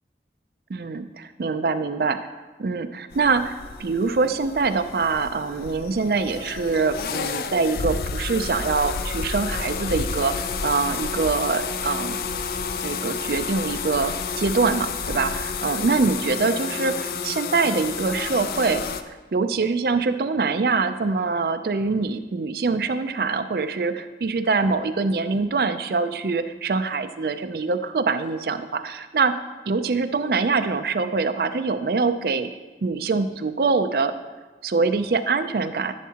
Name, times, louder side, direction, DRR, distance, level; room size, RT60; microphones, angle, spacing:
voice 1, 0.7-2.2 2.6-12.3 12.8-18.8 19.3-29.3 29.7-32.5 32.8-34.2 34.6-35.9, right 4 dB, 60° right, 10 dB, 0.4 m, -24 dB
sound 1, 3.1-19.0, left 5 dB, 55° left, 0.4 m, -30 dB
10.5 x 7.3 x 2.9 m, 1.2 s
head